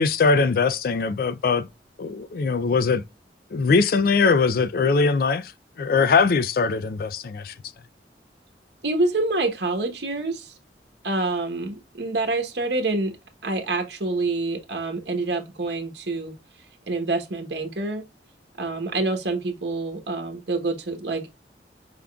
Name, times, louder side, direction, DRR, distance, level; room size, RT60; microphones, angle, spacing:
voice 1, 0.0-1.7 2.0-3.0 3.5-5.5 5.8-7.5, left 4 dB, 55° left, 0.4 m, -21 dB
voice 2, 8.8-10.6 11.0-13.2 13.4-16.3 16.9-18.0 18.6-21.3, right 2 dB, 70° right, 1.1 m, -27 dB
5.2 x 3.4 x 2.3 m
head